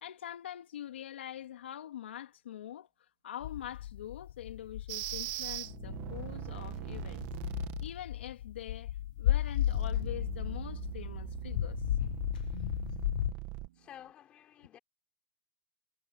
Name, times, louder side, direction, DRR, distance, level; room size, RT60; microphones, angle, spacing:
voice 1, 0.0-7.3 7.8-11.8, left 11 dB, 75° left, 2.9 m, -44 dB
sound 1, 1.3-1.9 8.0-14.1, right 14 dB, 45° right, 7.0 m, -66 dB
sound 2, 3.4-13.3, left 13 dB, 50° left, 0.5 m, -35 dB
sound 3, 4.9-8.0 9.4-13.7, right 18 dB, 30° right, 1.4 m, -41 dB
voice 2, 13.7-14.8, left 11 dB, 20° left, 4.1 m, -52 dB
supercardioid pair, 175°, 6 cm